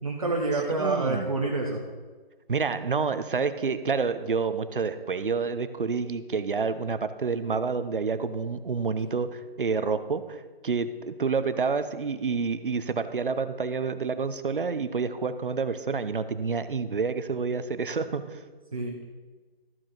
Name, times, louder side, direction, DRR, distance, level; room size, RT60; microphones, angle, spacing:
voice 1, 0.0-1.8 18.7-19.0, right 2 dB, 35° right, -1 dB, 1.0 m, -27 dB
voice 2, 0.8-1.3 2.5-18.4, right 5 dB, 60° right, 11 dB, 0.8 m, -28 dB
13.5 x 6.5 x 4.5 m, 1.4 s
hypercardioid pair, 175°, 30 cm